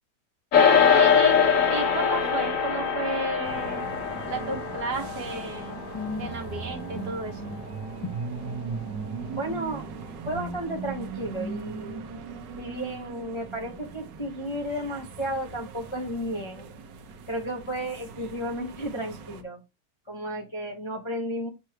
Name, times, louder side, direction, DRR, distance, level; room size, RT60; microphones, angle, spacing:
sound 1, 0.5-10.0, left 7 dB, 50° left, 1.4 m, -24 dB
voice 1, 0.9-1.4 1.7-3.9 4.3-5.8 6.2-7.6, right 2 dB, 65° right, 4 dB, 1.8 m, -33 dB
sound 2, 3.4-19.4, right 5 dB, 80° right, 1.5 m, -39 dB
voice 2, 5.9-6.3 7.0-7.2 9.3-9.8 10.3-12.0 12.6-16.7 17.3-19.6 20.1-21.5, equal, 20° left, 1 dB, 0.8 m, -33 dB
6.8 x 3.1 x 5.8 m, 0.24 s
omnidirectional pair, 1.9 m